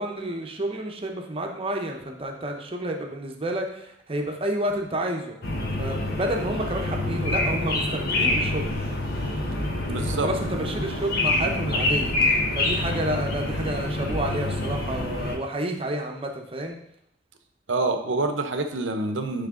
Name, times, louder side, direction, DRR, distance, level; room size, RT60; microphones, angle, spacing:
voice 1, 0.0-5.4 5.8-8.7 10.0-16.8, right 1 dB, 30° right, 2 dB, 0.8 m, -30 dB
sound 1, 5.4-15.4, left 2 dB, 55° left, 1.1 m, -26 dB
voice 2, 9.9-10.3 17.7-19.5, right 2 dB, 75° right, 7 dB, 0.7 m, -26 dB
9.5 x 3.3 x 3.7 m, 0.75 s
head